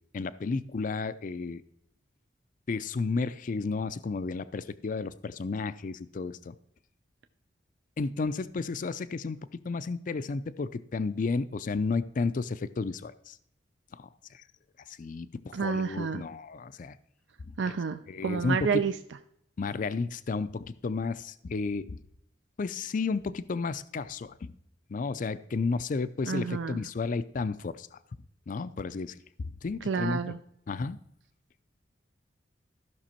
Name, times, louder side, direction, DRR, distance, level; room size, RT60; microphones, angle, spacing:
voice 1, 0.1-1.6 2.7-6.5 8.0-9.4 9.6-13.4 13.9-14.4 14.9-17.0 17.5-17.6 18.1-18.8 19.6-22.0 22.6-24.5 24.9-28.0 28.5-30.3 30.7-31.0, left 4 dB, 45° left, 14 dB, 0.4 m, -32 dB
voice 2, 15.5-16.2 17.6-18.9 26.2-26.9 29.8-30.4, right 5 dB, 75° right, 9 dB, 0.5 m, -30 dB
14.0 x 6.0 x 4.4 m, 0.72 s
head